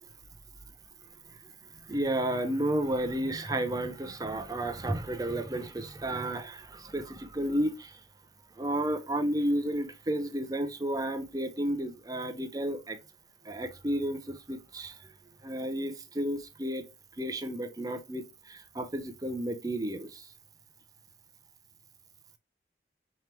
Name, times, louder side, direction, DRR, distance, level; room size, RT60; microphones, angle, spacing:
voice 1, 1.9-8.0 8.6-13.0 13.4-15.0 15.4-16.9 17.2-20.3, right 1 dB, 20° right, 0.6 m, -32 dB
4.7 x 3.0 x 3.2 m
head